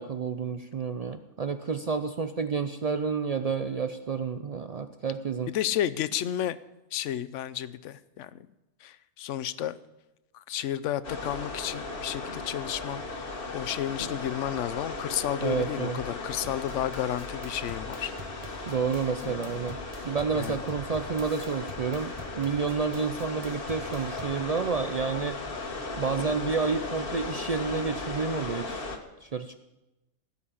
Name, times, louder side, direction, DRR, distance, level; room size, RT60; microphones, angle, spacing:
voice 1, 0.0-5.5 15.4-16.0 18.7-19.8 20.0-25.4 26.0-28.9 29.2-29.5, right 5 dB, 85° right, 8 dB, 0.3 m, -30 dB
voice 2, 5.5-6.6 6.9-8.5 8.8-9.8 10.3-18.1 18.4-18.7 19.2-19.7 20.3-20.6, left 11 dB, 70° left, 16 dB, 0.9 m, -32 dB
sound 1, 11.0-29.0, left 3 dB, 45° left, 1.4 m, -37 dB
sound 2, 16.4-24.4, right 1 dB, 25° right, 1.4 m, -46 dB
17.0 x 5.7 x 8.5 m, 0.98 s
omnidirectional pair, 1.4 m